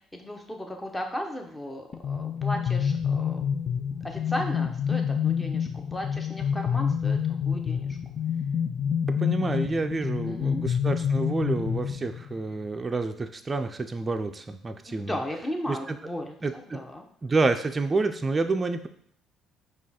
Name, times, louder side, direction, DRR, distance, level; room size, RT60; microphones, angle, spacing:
voice 1, 0.1-3.5 4.0-8.0 10.2-10.6 14.9-17.1, left 1 dB, 15° left, 3 dB, 0.8 m, -36 dB
sound 1, 1.9-12.4, left 7 dB, 40° left, 0.4 m, -28 dB
voice 2, 9.2-15.2 15.7-15.8 16.4-16.8 17.2-18.9, right 3 dB, 25° right, 6 dB, 0.4 m, -28 dB
5.1 x 2.4 x 4.2 m, 0.63 s
cardioid pair, 100°, 0 cm